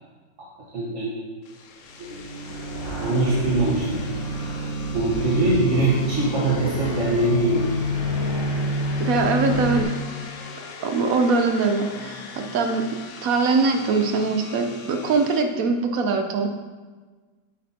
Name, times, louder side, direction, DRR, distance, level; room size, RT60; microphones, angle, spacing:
voice 1, 0.7-1.2 2.1-2.5 2.8-4.0 4.9-7.7, right 2 dB, 45° right, -6 dB, 1.3 m, -23 dB
sound 1, 1.4-15.4, left 5 dB, 65° left, 0.8 m, -41 dB
sound 2, 2.0-9.8, equal, 85° right, 2.1 m, -28 dB
voice 2, 9.0-9.9 10.8-12.9 13.2-16.5, right 4 dB, 70° right, 5 dB, 0.8 m, -22 dB
8.4 x 7.4 x 2.8 m, 1.4 s
omnidirectional pair, 1.9 m